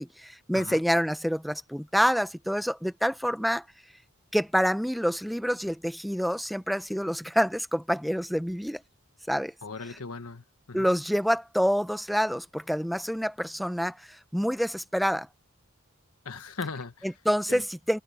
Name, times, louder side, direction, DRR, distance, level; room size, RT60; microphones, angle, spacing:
voice 1, 0.0-3.6 4.3-8.8 9.3-9.5 10.7-14.0 14.3-15.3 17.0-18.0, equal, ahead, 0.8 m, -27 dB
voice 2, 9.6-10.9 16.2-17.1 17.5-17.6, left 4 dB, 85° left, 1.3 m, -38 dB
head